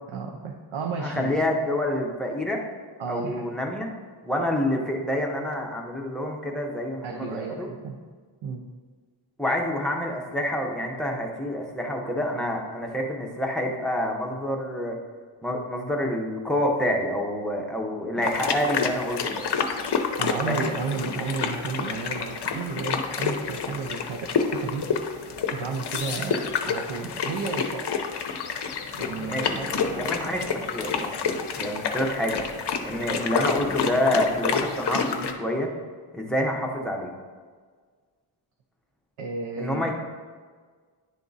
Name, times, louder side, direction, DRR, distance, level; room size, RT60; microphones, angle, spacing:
voice 1, 0.1-1.6 3.0-3.5 7.0-8.0 8.4-8.6 18.1-18.3 20.2-24.9 25.5-27.9 28.9-29.9 39.2-39.9, right 4 dB, 65° right, 3 dB, 0.7 m, -33 dB
voice 2, 1.0-2.6 3.1-3.9 4.2-7.7 9.4-14.9 15.4-19.4 20.5-20.7 29.3-29.6 29.9-32.4 32.8-35.7 36.1-37.1 39.6-39.9, left 1 dB, ahead, 1 dB, 0.7 m, -27 dB
sound 1, 18.2-35.3, left 6 dB, 55° left, 0.6 m, -29 dB
10.5 x 3.6 x 4.0 m, 1.5 s
wide cardioid pair, 165°, 50 cm